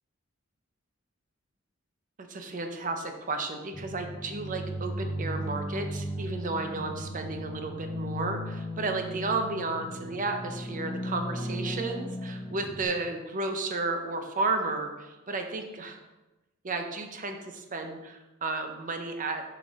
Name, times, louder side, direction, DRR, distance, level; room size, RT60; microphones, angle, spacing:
voice 1, 2.2-16.0 16.6-19.4, right 3 dB, 40° right, 5 dB, 0.7 m, -33 dB
sound 1, 3.7-12.8, equal, 10° left, 0.8 m, -36 dB
6.3 x 5.3 x 3.7 m, 1.1 s
head